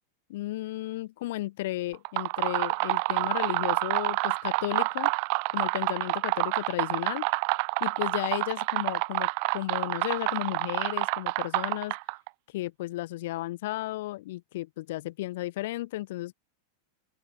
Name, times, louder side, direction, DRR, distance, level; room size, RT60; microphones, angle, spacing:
voice 1, 0.3-5.1 5.5-7.3 7.8-9.3 9.5-11.9 12.5-16.3, left 17 dB, 55° left, 1.4 m, -34 dB
sound 1, 1.9-12.3, right 40 dB or more, 45° right, 1.0 m, -28 dB
open air
figure-of-eight pair, 90°, 0 cm